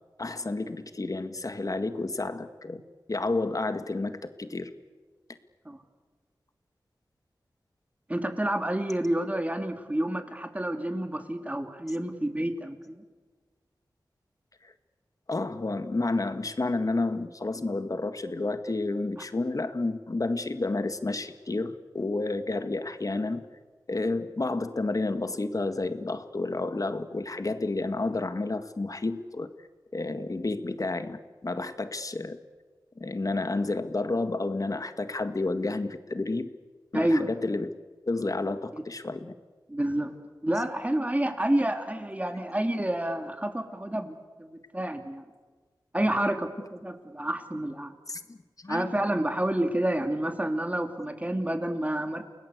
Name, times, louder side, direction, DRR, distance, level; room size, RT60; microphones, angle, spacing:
voice 1, 0.2-2.8 3.1-4.7 14.6-14.7 15.3-23.5 23.9-29.5 29.9-32.4 33.0-36.5 36.9-37.7 38.1-39.3 48.1-48.9, left 2 dB, 45° left, 9 dB, 1.8 m, -30 dB
voice 2, 8.1-13.0 36.9-37.3 39.7-40.1 40.4-45.2 45.9-47.9 48.7-52.2, right 1 dB, 20° right, 6 dB, 3.1 m, -29 dB
29.5 x 19.5 x 8.3 m, 1.4 s
cardioid pair, 55°, 8 cm